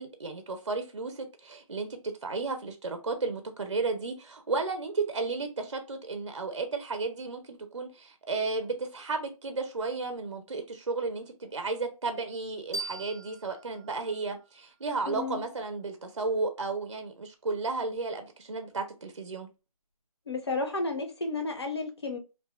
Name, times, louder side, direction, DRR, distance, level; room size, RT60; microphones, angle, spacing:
voice 1, 0.0-1.9 2.2-11.2 11.5-19.5, right 3 dB, 50° right, 0.5 m, -33 dB
sound 1, 12.7-15.5, right 2 dB, 5° right, 0.6 m, -42 dB
voice 2, 15.1-15.4 20.3-22.2, left 3 dB, 45° left, 0.6 m, -32 dB
2.7 x 2.1 x 3.2 m
figure-of-eight pair, 180°, 19 cm